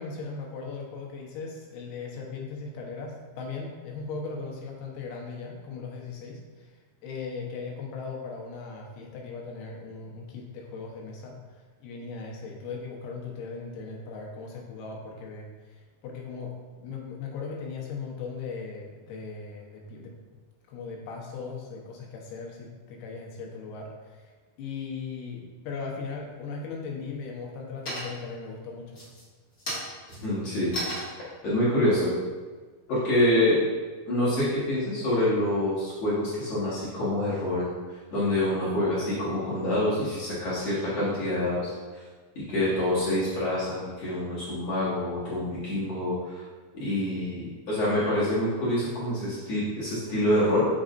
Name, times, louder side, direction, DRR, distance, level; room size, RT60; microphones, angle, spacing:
voice 1, 0.0-16.6 16.8-20.4 20.7-24.3 24.6-29.1 30.1-30.2, left 4 dB, 85° left, -1 dB, 3.0 m, -38 dB
sound 1, 26.3-26.8 27.2-27.6 27.8-28.4 28.9-33.3, equal, 35° left, 1.2 m, -37 dB
voice 2, 30.2-30.7 31.4-32.1 32.9-33.6 34.1-42.0 42.3-46.4 46.7-50.7, left 1 dB, 55° left, -11 dB, 2.2 m, -26 dB
7.2 x 5.5 x 2.6 m, 1.4 s
omnidirectional pair, 4.5 m